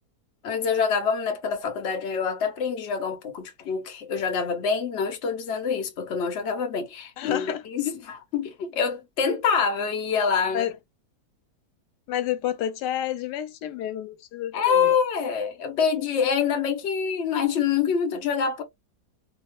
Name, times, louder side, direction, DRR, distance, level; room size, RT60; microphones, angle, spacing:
voice 1, 0.4-10.7 14.5-18.6, left 6 dB, 50° left, 1.0 m, -26 dB
voice 2, 7.2-7.6 10.5-10.7 12.1-14.9, left 11 dB, 90° left, 1.2 m, -29 dB
2.8 x 2.0 x 3.0 m
omnidirectional pair, 1.8 m